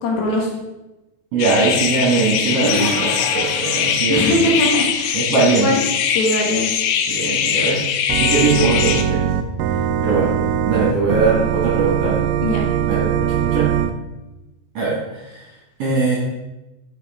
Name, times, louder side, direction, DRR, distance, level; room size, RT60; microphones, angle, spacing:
voice 1, 0.0-0.5 2.6-2.9 4.1-5.2 5.6-5.8 6.1-6.7 12.4-12.6, left 1 dB, 70° left, -1 dB, 2.9 m, -20 dB
voice 2, 1.3-4.5 5.1-5.7 7.1-7.8 8.1-9.4 10.0-10.3 10.7-12.2 12.8-13.7 14.7-15.5 15.8-16.2, right 4 dB, 60° right, -4 dB, 1.9 m, -20 dB
sound 1, 1.4-9.0, left 8 dB, 85° left, 2.6 m, -21 dB
sound 2, 2.5-4.7 10.2-10.3 12.2-12.3, left 2 dB, 20° left, 2.3 m, -30 dB
Organ, 8.1-13.9, right 9 dB, 90° right, 2.0 m, -21 dB
9.4 x 5.2 x 3.5 m, 1.0 s
omnidirectional pair, 4.6 m